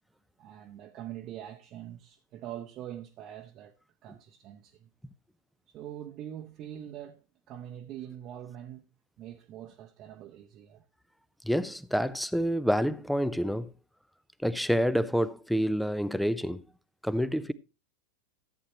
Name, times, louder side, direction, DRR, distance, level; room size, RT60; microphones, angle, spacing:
voice 1, 0.4-3.7 4.0-4.9 5.7-8.9 9.2-10.8, right 11 dB, 35° right, 0.8 m, -44 dB
voice 2, 11.4-13.7 14.4-16.6 17.0-17.5, equal, ahead, 0.5 m, -28 dB
14.0 x 8.6 x 3.0 m
figure-of-eight pair, 90°, 0 cm